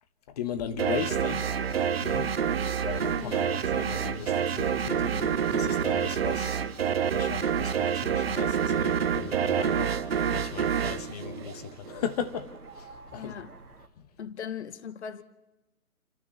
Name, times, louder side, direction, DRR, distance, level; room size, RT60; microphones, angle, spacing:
voice 1, 0.4-1.5 2.0-2.3 2.8-6.6 7.1-10.0 10.3-13.4, left 7 dB, 25° left, 1.4 m, -37 dB
sound 1, 0.8-12.1, right 8 dB, 40° right, 1.0 m, -27 dB
sound 2, 1.1-13.9, right 3 dB, 85° right, 2.0 m, -48 dB
voice 2, 3.2-3.6 13.1-13.5 14.2-15.2, left 8 dB, 50° left, 1.2 m, -39 dB
28.5 x 13.0 x 7.2 m
figure-of-eight pair, 145°, 44 cm